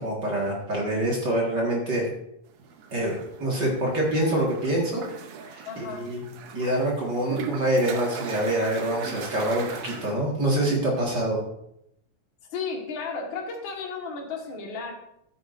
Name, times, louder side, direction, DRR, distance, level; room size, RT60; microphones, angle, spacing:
voice 1, 0.0-2.1 2.9-5.1 5.5-6.3 6.5-11.4, right 1 dB, 40° right, -2 dB, 2.0 m, -26 dB
sound 1, 2.6-10.1, right 5 dB, 70° right, 2.0 m, -39 dB
voice 2, 5.6-6.1 12.5-14.9, left 5 dB, 45° left, 0 dB, 2.0 m, -33 dB
13.0 x 9.5 x 2.6 m, 0.77 s
omnidirectional pair, 3.5 m